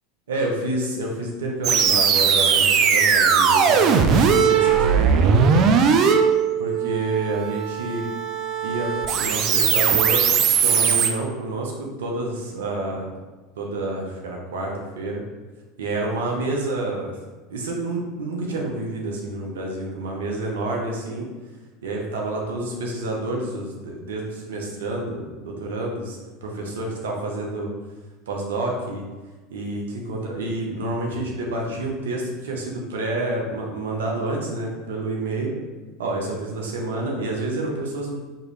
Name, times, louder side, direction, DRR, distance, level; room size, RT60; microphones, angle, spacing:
voice 1, 0.3-5.6 6.6-8.1 8.6-10.3 10.6-13.1 13.6-15.2 15.8-17.1 17.5-21.3 21.8-27.7 28.3-29.0 29.5-35.6 36.0-38.2, right 2 dB, 80° right, -1 dB, 1.0 m, -28 dB
sound 1, 1.6-11.1, right 6 dB, 50° right, 0.5 m, -19 dB
4.7 x 3.1 x 3.2 m, 1.3 s
hypercardioid pair, 90°, 0 cm